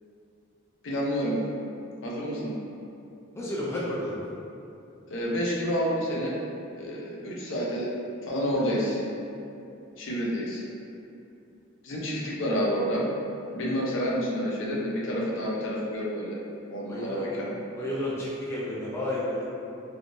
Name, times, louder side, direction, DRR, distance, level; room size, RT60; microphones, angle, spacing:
voice 1, 0.8-1.4 2.0-2.6 5.1-6.4 6.8-7.9 8.3-9.0 10.0-10.6 11.8-13.1 13.5-16.4 16.7-17.5, equal, 65° left, -4 dB, 0.6 m, -29 dB
voice 2, 3.4-4.2 16.9-17.2 17.8-19.4, left 1 dB, 15° left, -7 dB, 0.3 m, -31 dB
3.5 x 2.3 x 2.5 m, 2.7 s
head